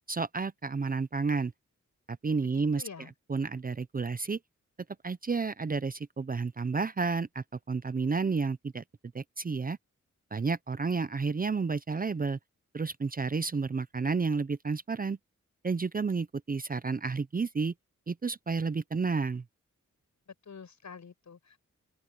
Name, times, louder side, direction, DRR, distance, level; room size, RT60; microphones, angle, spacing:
voice 1, 0.1-1.5 2.2-2.8 3.3-4.4 5.0-8.8 9.1-9.8 10.3-12.4 12.7-15.2 15.6-17.7 18.1-19.4, right 4 dB, 30° right, 0.6 m, -31 dB
voice 2, 2.5-3.1 20.3-21.6, left 6 dB, 70° left, 6.1 m, -47 dB
open air
wide cardioid pair, 95°, 30 cm